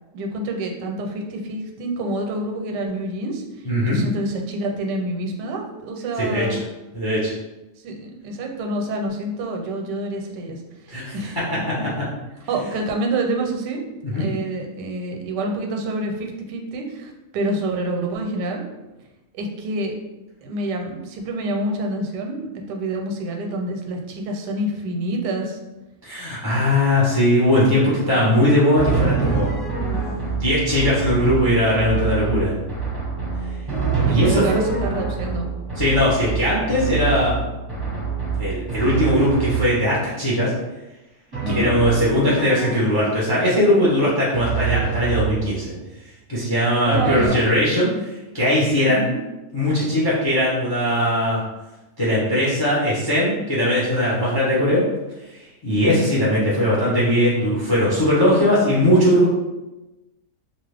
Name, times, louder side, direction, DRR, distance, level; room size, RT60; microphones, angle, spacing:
voice 1, 0.1-6.6 7.8-10.6 11.1-11.4 12.5-13.8 14.1-18.6 19.3-19.9 20.4-25.6 34.0-35.5 41.4-41.7 46.8-47.4 48.9-49.2 55.9-56.2, right 1 dB, 90° right, 2 dB, 1.2 m, -27 dB
voice 2, 3.6-4.0 6.2-6.6 6.9-7.3 10.9-11.1 14.0-14.3 26.0-29.5 30.4-32.5 34.1-34.4 35.7-37.4 38.4-40.5 41.5-45.7 46.3-49.0 49.5-51.4 52.0-54.8 55.3-59.3, left 1 dB, 35° left, -8 dB, 0.3 m, -19 dB
Drum, 28.7-40.1 41.3-43.3 44.3-45.8 46.9-47.3, right 5 dB, 20° right, 0.8 m, -26 dB
2.8 x 2.3 x 3.3 m, 1.0 s
omnidirectional pair, 1.8 m